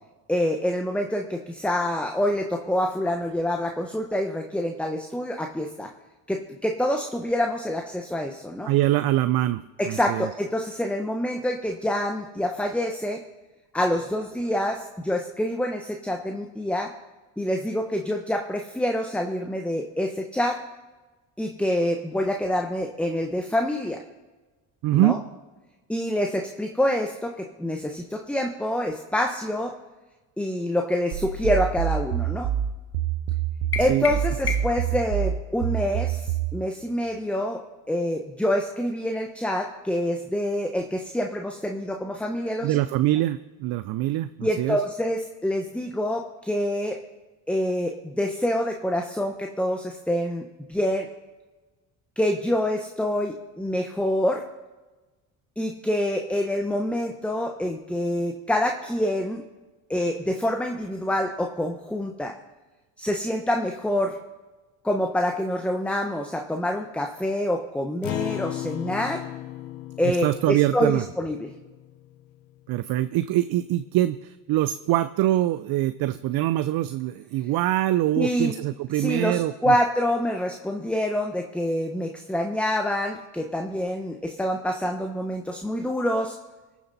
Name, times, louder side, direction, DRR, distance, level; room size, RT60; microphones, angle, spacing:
voice 1, 0.3-5.9 6.3-8.7 9.8-13.2 13.7-16.9 17.4-20.6 21.4-24.0 24.9-25.2 25.9-29.8 30.4-32.5 33.8-37.6 37.9-42.8 44.4-47.0 47.5-51.1 52.2-54.4 55.6-59.4 59.9-62.3 63.0-64.2 64.8-69.2 70.0-71.5 78.2-78.5 78.9-86.4, left 1 dB, 5° left, 3 dB, 1.1 m, -26 dB
voice 2, 8.7-10.3 24.8-25.2 33.9-34.1 42.6-44.8 70.0-71.1 72.7-79.7, right 14 dB, 60° right, 13 dB, 0.6 m, -24 dB
sound 1, 31.1-36.6, right 10 dB, 80° right, 1.2 m, -27 dB
sound 2, 33.7-34.9, left 5 dB, 30° left, 1.1 m, -31 dB
Acoustic guitar, 68.0-72.7, left 15 dB, 80° left, 0.7 m, -36 dB
21.0 x 7.2 x 4.1 m, 1.2 s
supercardioid pair, 70°, 41 cm